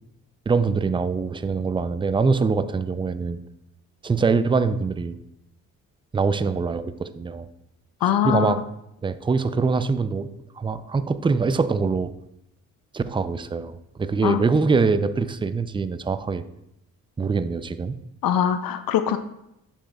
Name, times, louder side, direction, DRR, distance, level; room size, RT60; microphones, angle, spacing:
voice 1, 0.5-3.4 4.0-5.2 6.1-7.5 8.2-8.6 9.0-10.3 10.6-12.1 12.9-16.4 17.2-18.0, right 4 dB, 15° right, 12 dB, 0.4 m, -23 dB
voice 2, 8.0-8.5 14.2-14.4 18.2-19.2, left 9 dB, 65° left, 10 dB, 0.6 m, -22 dB
7.2 x 7.1 x 2.3 m, 0.83 s
supercardioid pair, 60°, 37 cm